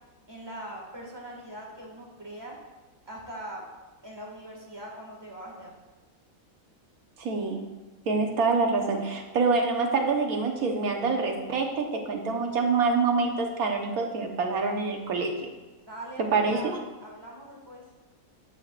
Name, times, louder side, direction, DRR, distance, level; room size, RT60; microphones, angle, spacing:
voice 1, 0.3-2.6 3.1-3.6 4.0-5.7 15.8-17.8, right 1 dB, 15° right, -2 dB, 2.0 m, -42 dB
voice 2, 7.2-7.6 8.1-15.5 16.2-16.8, right 4 dB, 85° right, 2 dB, 1.6 m, -26 dB
11.5 x 8.2 x 2.5 m, 1.2 s
omnidirectional pair, 1.5 m